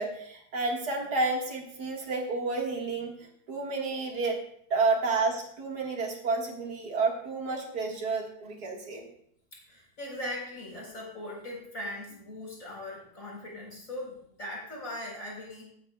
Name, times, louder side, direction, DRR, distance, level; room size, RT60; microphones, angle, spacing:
voice 1, 0.0-3.1 3.5-4.4 4.7-9.1, right 3 dB, 75° right, 1 dB, 2.2 m, -30 dB
voice 2, 9.5-15.6, left 1 dB, 50° left, -2 dB, 4.5 m, -40 dB
17.0 x 8.9 x 2.3 m, 0.66 s
omnidirectional pair, 1.7 m